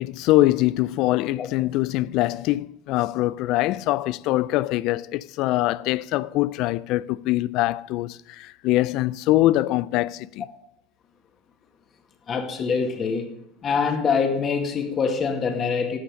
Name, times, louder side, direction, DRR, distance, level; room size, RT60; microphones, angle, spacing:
voice 1, 0.0-10.4, left 17 dB, 60° left, 0.3 m, -23 dB
voice 2, 12.3-13.3 13.6-16.0, left 5 dB, 35° left, 1.9 m, -24 dB
11.0 x 6.6 x 6.5 m
supercardioid pair, 105°, 0 cm